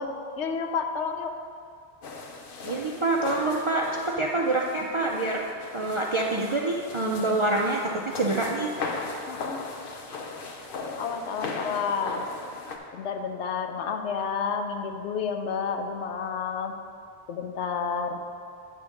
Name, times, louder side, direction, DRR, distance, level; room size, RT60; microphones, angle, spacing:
voice 1, 0.0-1.3 9.3-9.6 11.0-12.3 12.9-16.8 17.3-18.2, left 6 dB, 90° left, 6 dB, 0.9 m, -30 dB
sound 1, 2.0-12.8, left 3 dB, 60° left, 0.8 m, -38 dB
voice 2, 2.6-5.4 5.7-8.7, right 2 dB, 50° right, -1 dB, 0.3 m, -26 dB
8.7 x 3.8 x 6.3 m, 2.4 s
omnidirectional pair, 1.1 m